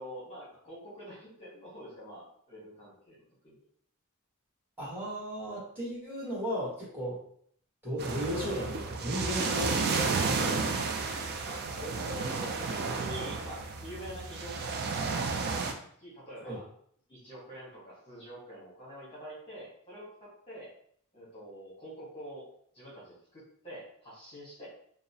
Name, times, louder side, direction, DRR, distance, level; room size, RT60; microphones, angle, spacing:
voice 1, 0.0-3.2 3.4-3.6 11.5-15.6 16.0-16.7 17.1-20.7 21.1-22.4 22.7-24.7, equal, 25° left, -8 dB, 0.9 m, -45 dB
voice 2, 4.8-7.2 7.8-10.7 16.4-16.6, equal, 10° right, -9 dB, 1.2 m, -35 dB
sound 1, 8.0-15.7, right 4 dB, 45° right, 0.3 m, -32 dB
2.7 x 2.0 x 2.7 m, 0.63 s
head